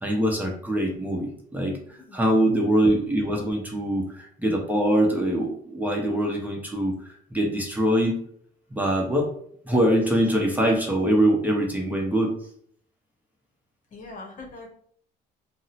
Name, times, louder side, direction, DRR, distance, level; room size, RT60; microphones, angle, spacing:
voice 1, 0.0-8.2 8.7-9.3 9.6-12.3, right 1 dB, 10° right, 0 dB, 0.7 m, -23 dB
voice 2, 1.9-2.3 13.9-14.7, left 3 dB, 50° left, 1 dB, 0.9 m, -42 dB
2.7 x 2.1 x 4.0 m, 0.62 s
cardioid pair, 110°, 17 cm